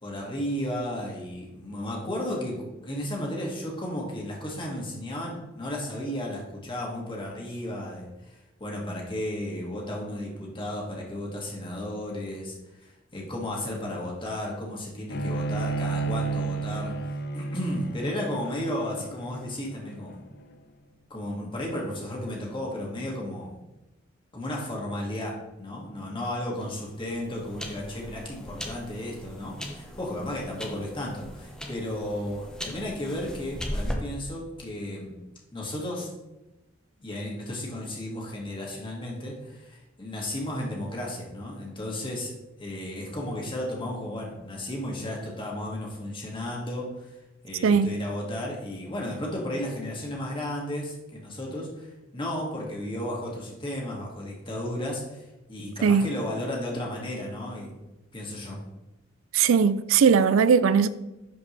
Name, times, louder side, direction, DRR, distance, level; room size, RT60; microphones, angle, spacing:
voice 1, 0.0-20.2 21.1-23.6 24.3-35.2 35.5-36.1 37.0-42.3 42.6-47.1 47.4-58.6, left 1 dB, 25° left, 2.1 m, -34 dB
Bowed string instrument, 15.1-20.4, right 3 dB, 55° left, 0.6 m, -32 dB
sound 1, 26.6-33.9, equal, 5° left, 1.0 m, -38 dB
voice 2, 59.3-60.9, right 6 dB, 85° right, 0.4 m, -19 dB
11.0 x 5.1 x 3.3 m
head